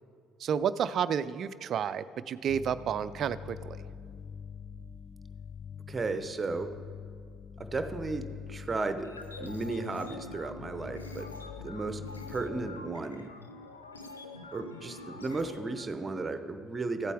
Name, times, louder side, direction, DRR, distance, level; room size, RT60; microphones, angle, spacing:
voice 1, 0.4-3.9, right 8 dB, 50° right, 15 dB, 0.4 m, -31 dB
sound 1, 2.5-12.9, left 7 dB, 30° left, 0.4 m, -45 dB
voice 2, 5.9-6.7 7.6-9.1 9.4-11.3 11.6-12.0 12.3-13.3 14.5-17.1, right 3 dB, 25° right, 9 dB, 0.8 m, -34 dB
sound 2, 9.0-15.8, left 2 dB, 90° left, 0.5 m, -46 dB
14.5 x 8.2 x 3.6 m, 2.1 s
figure-of-eight pair, 55°, 0 cm